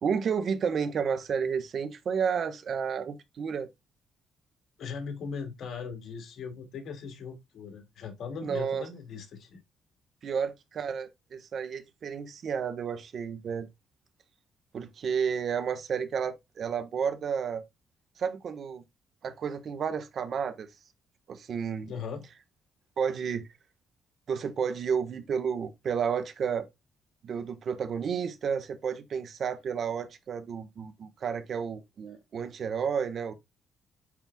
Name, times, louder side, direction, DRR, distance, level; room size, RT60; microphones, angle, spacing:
voice 1, 0.0-3.7 8.4-8.8 10.2-13.7 14.7-17.6 18.2-18.8 19.2-20.7 21.3-21.9 23.0-23.4 24.3-26.7 27.2-33.3, right 6 dB, 55° right, 1.3 m, -31 dB
voice 2, 4.8-9.6 21.9-22.2, left 5 dB, 70° left, 2.4 m, -39 dB
9.8 x 4.5 x 2.3 m
cardioid pair, 90°, 0 cm